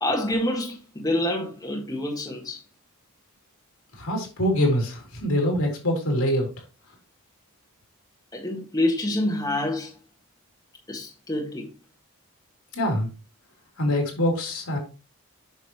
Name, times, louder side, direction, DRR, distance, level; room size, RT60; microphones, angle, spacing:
voice 1, 0.0-2.6 8.3-9.9 10.9-11.7, left 1 dB, 15° left, 1.6 m, -27 dB
voice 2, 3.9-6.5 12.7-13.1 13.8-14.8, equal, 75° left, 3.3 m, -24 dB
8.2 x 6.6 x 3.0 m
head